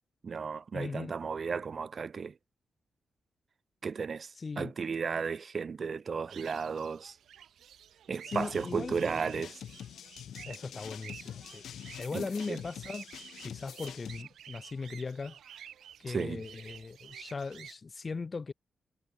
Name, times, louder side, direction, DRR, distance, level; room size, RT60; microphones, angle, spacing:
voice 1, 0.2-2.3 3.8-7.2 8.1-9.6 12.1-12.6 16.1-16.4, right 5 dB, 40° right, 1.1 m, -34 dB
voice 2, 0.7-1.1 4.4-4.7 8.3-9.0 10.5-11.6 12.0-13.1 13.4-15.3 16.0-18.5, left 4 dB, 30° left, 2.0 m, -38 dB
sound 1, 6.3-17.7, right 9 dB, 85° right, 3.8 m, -51 dB
sound 2, 8.3-14.2, left 9 dB, 85° left, 7.9 m, -46 dB
wide cardioid pair, 145°, 0 cm